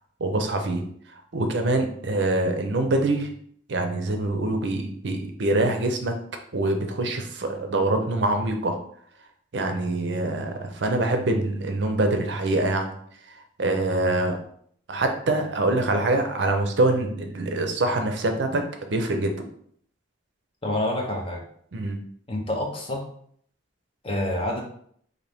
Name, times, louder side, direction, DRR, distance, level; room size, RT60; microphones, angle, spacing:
voice 1, 0.2-0.8 1.3-3.3 3.7-6.1 6.5-8.8 9.5-13.0 13.6-14.4 14.9-19.3 21.7-22.0, right 2 dB, 65° right, 5 dB, 0.5 m, -24 dB
voice 2, 20.6-21.4 22.3-23.0 24.0-24.6, left 1 dB, 30° left, 0 dB, 0.7 m, -27 dB
4.0 x 2.6 x 3.4 m, 0.62 s
head